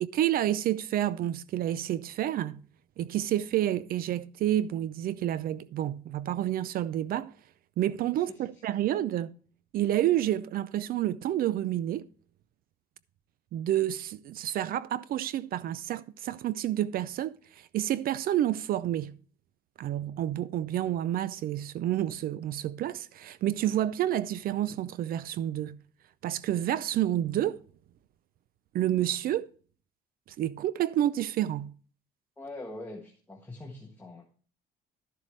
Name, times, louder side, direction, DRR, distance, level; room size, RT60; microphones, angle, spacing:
voice 1, 0.0-2.6 3.0-7.3 7.8-9.3 9.7-12.1 13.5-17.3 17.7-19.2 19.8-25.8 26.2-27.6 28.7-29.5 30.4-31.7, right 12 dB, 60° right, 0.5 m, -29 dB
voice 2, 8.1-8.6 32.4-34.3, left 2 dB, 10° left, 1.5 m, -43 dB
12.5 x 7.4 x 3.2 m
cardioid pair, 110°, 17 cm